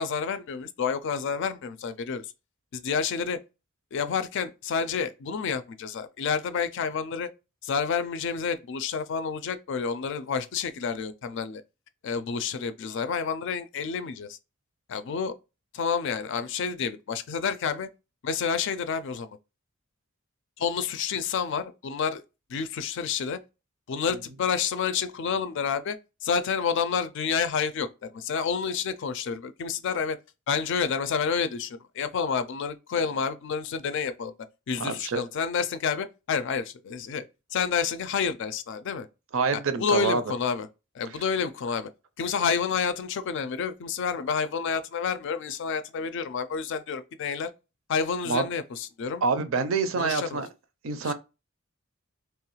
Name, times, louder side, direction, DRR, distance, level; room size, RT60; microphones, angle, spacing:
voice 1, 0.0-2.2 2.7-3.4 3.9-7.3 7.6-11.6 12.0-14.4 14.9-15.3 15.7-17.9 18.2-19.3 20.6-22.2 22.5-23.4 23.9-30.2 30.5-34.3 34.7-37.3 37.5-39.1 39.5-40.7 40.9-41.9 42.2-47.5 47.9-49.2 50.0-50.4 51.0-51.1, left 6 dB, 60° left, 0.4 m, -29 dB
voice 2, 34.8-35.2 39.3-40.2 48.3-48.4 49.2-50.5 50.8-51.1, right 4 dB, 70° right, 0.5 m, -26 dB
3.0 x 2.3 x 3.0 m
head